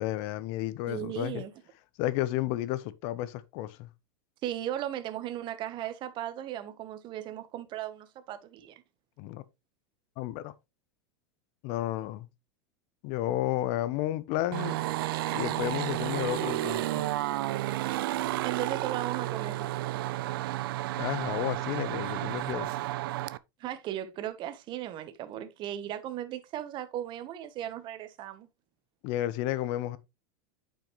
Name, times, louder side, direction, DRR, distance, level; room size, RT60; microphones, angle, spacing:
voice 1, 0.0-1.4 2.0-3.9 9.2-9.4 10.2-10.5 11.6-12.3 13.0-14.8 15.3-17.0 20.9-22.7 29.0-30.0, left 14 dB, 55° left, 0.9 m, -32 dB
voice 2, 0.9-1.5 4.4-8.8 18.4-19.7 23.6-28.5, right 12 dB, 40° right, 1.2 m, -36 dB
sound 1, 14.5-23.4, right 15 dB, 75° right, 0.5 m, -32 dB
8.8 x 5.7 x 3.2 m
supercardioid pair, 125°, 12 cm